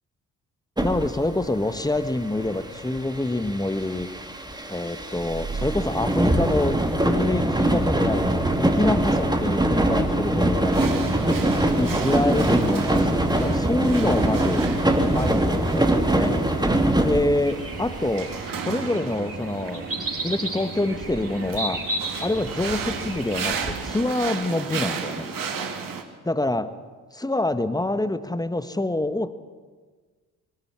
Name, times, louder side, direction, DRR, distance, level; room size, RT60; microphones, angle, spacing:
voice 1, 0.8-4.1 4.7-10.9 11.7-14.7 15.1-16.4 17.0-18.3 18.6-19.9 20.2-21.9 22.2-25.3 26.2-26.7 27.1-29.3, left 2 dB, 10° left, 12 dB, 1.4 m, -26 dB
sound 1, 0.8-18.4, right 1 dB, 10° right, 2.6 m, -23 dB
sound 2, 10.7-26.0, right 6 dB, 45° right, 2.6 m, -34 dB
sound 3, 17.4-23.7, right 2 dB, 30° right, 6.1 m, -33 dB
22.5 x 13.0 x 9.8 m, 1.4 s
figure-of-eight pair, 40°, 44 cm